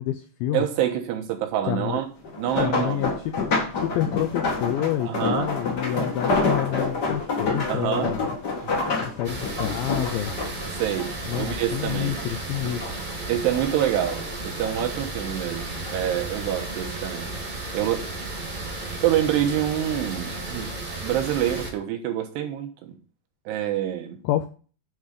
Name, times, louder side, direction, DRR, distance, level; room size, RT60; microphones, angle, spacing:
voice 1, 0.0-0.6 1.7-2.0 2.6-3.5 3.8-8.3 9.0-10.3 11.3-12.8 24.2-24.5, left 12 dB, 90° left, 9 dB, 2.1 m, -28 dB
voice 2, 0.5-2.1 2.4-3.2 5.0-5.6 5.9-6.1 7.7-8.2 8.6-8.8 9.3-9.4 10.8-12.2 12.6-12.8 13.3-17.3 17.7-18.1 19.0-20.7 21.0-23.0 23.5-24.2, right 11 dB, 85° right, 4 dB, 3.3 m, -27 dB
sound 1, 2.2-11.8 12.2-13.1 13.5-14.9 15.6-15.9 16.3-16.4, left 3 dB, 55° left, 1.1 m, -28 dB
sound 2, 9.2-21.7, right 2 dB, 25° right, 1.0 m, -33 dB
9.2 x 3.7 x 6.7 m, 0.38 s
omnidirectional pair, 4.8 m